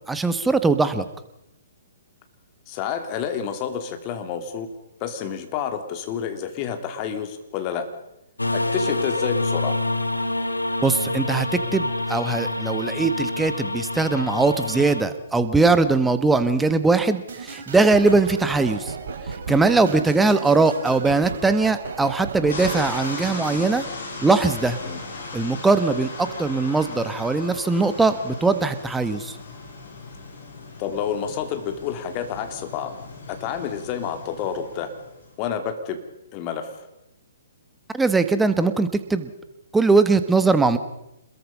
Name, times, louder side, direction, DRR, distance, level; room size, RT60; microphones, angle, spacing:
voice 1, 0.1-1.1 10.8-18.9 19.5-23.8 24.2-24.8 25.3-29.3 37.9-39.3 39.7-40.8, right 3 dB, 5° right, 10 dB, 1.4 m, -20 dB
voice 2, 2.7-4.7 5.0-7.9 8.5-9.8 19.8-20.1 24.8-25.0 30.8-32.9 33.3-34.9 35.4-36.0 36.3-36.8, left 8 dB, 30° left, 7 dB, 3.2 m, -29 dB
sound 1, 8.4-15.0, left 2 dB, 85° left, 2.0 m, -26 dB
sound 2, 17.3-23.6, right 5 dB, 55° right, 3.8 m, -35 dB
sound 3, 22.5-35.3, left 3 dB, 60° left, 8.0 m, -37 dB
27.5 x 21.5 x 5.5 m, 0.88 s
figure-of-eight pair, 125°, 0 cm